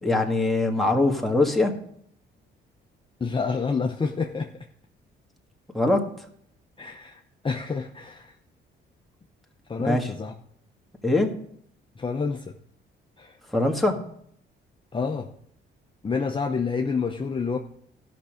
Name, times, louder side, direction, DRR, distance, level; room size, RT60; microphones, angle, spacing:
voice 1, 0.0-1.7 5.7-6.1 9.8-10.1 11.0-11.3 13.5-14.0, left 2 dB, ahead, 0 dB, 1.7 m, -22 dB
voice 2, 3.2-4.5 6.8-8.3 9.7-10.3 12.0-12.5 13.2-13.3 14.9-15.3 16.0-17.6, left 5 dB, 25° left, 2 dB, 0.8 m, -28 dB
13.5 x 6.1 x 5.1 m, 0.67 s
cardioid pair, 90°, 20 cm